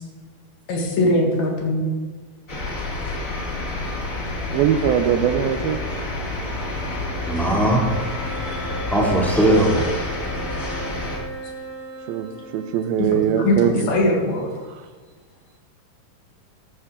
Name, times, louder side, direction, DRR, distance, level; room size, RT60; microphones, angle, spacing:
voice 1, 0.7-1.9 13.1-14.5, left 1 dB, 70° left, -1 dB, 3.8 m, -21 dB
sound 1, 2.5-11.2, left 2 dB, 45° left, 1.0 m, -29 dB
voice 2, 4.5-5.8 12.1-14.0 14.7-14.8, right 9 dB, 75° right, 9 dB, 2.5 m, -21 dB
sound 2, 5.0-14.4, right 1 dB, 20° right, 3.4 m, -38 dB
voice 3, 7.3-7.9 8.9-9.9, right 1 dB, ahead, -3 dB, 1.5 m, -18 dB
13.5 x 13.0 x 3.8 m, 1.4 s
omnidirectional pair, 4.6 m